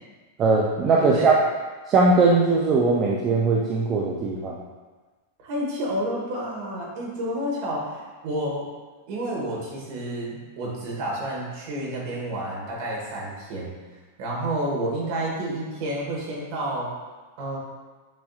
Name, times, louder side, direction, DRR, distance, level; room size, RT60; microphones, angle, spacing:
voice 1, 0.4-1.3 1.9-4.6, right 3 dB, 25° right, -3 dB, 0.4 m, -20 dB
voice 2, 1.0-1.3 5.4-8.7 9.1-13.7 14.2-16.9 17.4-17.6, right 1 dB, 45° right, -4 dB, 1.4 m, -30 dB
7.0 x 2.8 x 2.4 m, 1.3 s
supercardioid pair, 160°, 0 cm